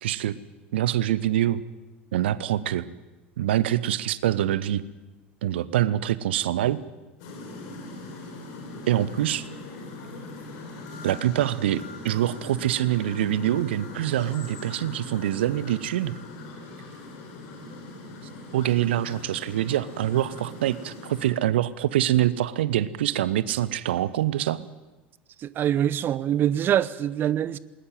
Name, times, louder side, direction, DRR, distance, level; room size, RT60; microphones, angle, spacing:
voice 1, 0.0-0.4 0.7-1.6 2.1-2.9 3.4-4.8 5.4-6.8 8.9-9.5 11.0-16.2 18.5-24.6, right 12 dB, 65° right, 0.9 m, -25 dB
sound 1, 7.2-21.3, left 2 dB, 50° left, 5.1 m, -41 dB
voice 2, 25.4-27.6, right 10 dB, 35° right, 0.8 m, -24 dB
20.0 x 20.0 x 9.2 m
figure-of-eight pair, 75°, 6 cm